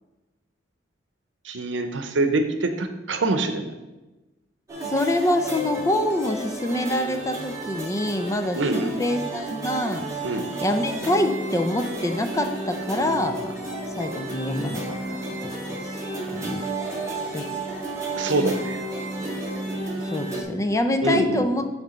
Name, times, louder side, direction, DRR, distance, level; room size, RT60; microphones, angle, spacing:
voice 1, 1.4-3.7 8.5-8.9 10.2-10.4 18.2-18.8 19.2-19.4 21.0-21.5, right 2 dB, 90° right, 7 dB, 0.7 m, -25 dB
sound 1, 4.7-20.4, right 2 dB, 15° right, 1.7 m, -32 dB
voice 2, 4.8-10.0 10.6-13.5 13.9-15.2 15.7-16.0 16.3-16.6 17.3-17.6 20.0-21.6, left 1 dB, 15° left, 6 dB, 0.5 m, -25 dB
9.4 x 3.3 x 5.1 m, 1.1 s
head